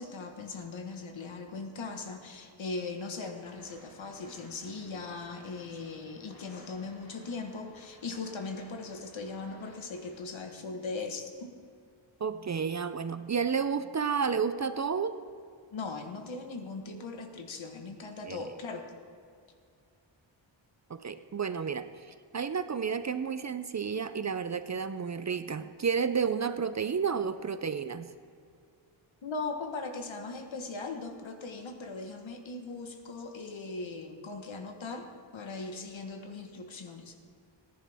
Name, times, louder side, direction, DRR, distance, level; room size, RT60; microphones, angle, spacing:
voice 1, 0.0-11.5 15.7-18.9 29.2-35.1 35.3-37.2, left 3 dB, 70° left, 5 dB, 1.4 m, -39 dB
sound 1, 3.3-10.2, equal, 50° left, 3.1 m, -58 dB
voice 2, 12.2-15.2 18.2-18.4 20.9-28.1, right 6 dB, 40° right, 11 dB, 0.4 m, -31 dB
18.5 x 10.5 x 3.5 m, 2.3 s
wide cardioid pair, 120°, 47 cm